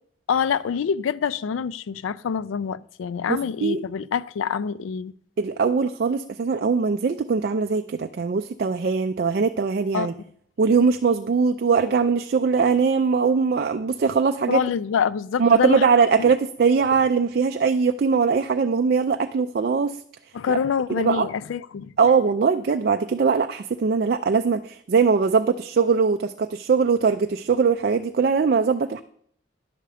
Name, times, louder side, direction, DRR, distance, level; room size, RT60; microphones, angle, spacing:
voice 1, 0.3-5.1 9.9-10.1 14.5-15.9 16.2-16.3 20.3-21.9, left 7 dB, 85° left, 0.3 m, -26 dB
voice 2, 3.3-3.8 5.4-10.1 10.6-14.6 15.4-20.0 20.5-20.6 20.9-21.3 22.0-29.0, right 5 dB, 50° right, 0.3 m, -21 dB
10.0 x 6.8 x 4.8 m
head